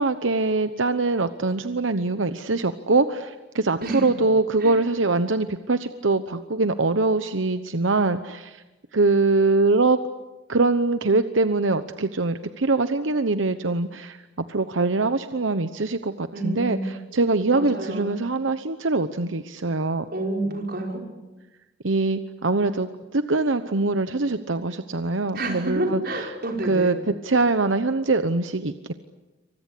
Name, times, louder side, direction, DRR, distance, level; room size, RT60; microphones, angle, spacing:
voice 1, 0.0-8.6 8.9-10.0 10.5-20.1 21.8-26.3 26.6-28.9, right 3 dB, 85° right, 10 dB, 1.0 m, -23 dB
voice 2, 3.8-4.2 4.6-4.8 16.3-16.9 17.5-18.2 20.1-21.0 25.3-26.9, right 2 dB, 50° right, 1 dB, 5.5 m, -29 dB
28.0 x 25.0 x 8.5 m, 1.1 s
head